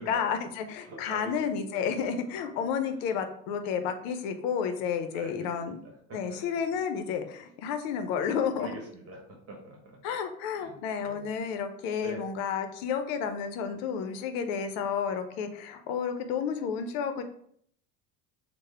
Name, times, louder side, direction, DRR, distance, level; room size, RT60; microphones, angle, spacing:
voice 1, 0.0-5.8 6.1-8.7 10.0-17.2, left 7 dB, 75° left, 8 dB, 0.6 m, -31 dB
voice 2, 0.8-1.8 5.1-5.5 5.8-6.4 8.6-10.0 10.5-10.7 11.0-11.3 12.0-12.2, right 2 dB, 35° right, 1 dB, 1.0 m, -44 dB
3.4 x 2.1 x 3.3 m, 0.66 s
supercardioid pair, 105°, 39 cm